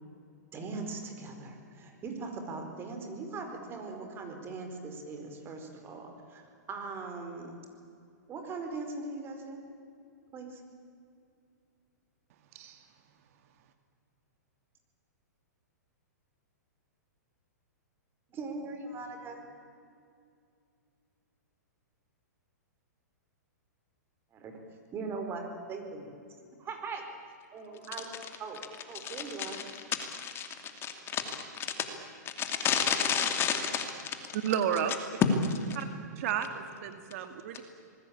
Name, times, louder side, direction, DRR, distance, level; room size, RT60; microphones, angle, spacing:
voice 1, 0.5-7.5 8.3-9.6 10.3-10.6 18.3-19.4 24.3-24.6 24.9-26.1 26.6-27.0 27.5-28.1 28.4-28.6 28.9-29.6, right 3 dB, 25° right, 5 dB, 4.6 m, -40 dB
voice 2, 29.0-29.5 30.2-30.5 30.8-31.7 32.4-33.8, left 8 dB, 25° left, 6 dB, 2.8 m, -31 dB
voice 3, 34.3-34.9 35.8-35.9 36.2-36.5 36.8-37.6, right 9 dB, 55° right, 8 dB, 2.1 m, -31 dB
26.5 x 20.5 x 8.8 m, 2.5 s
hypercardioid pair, 135°, 9 cm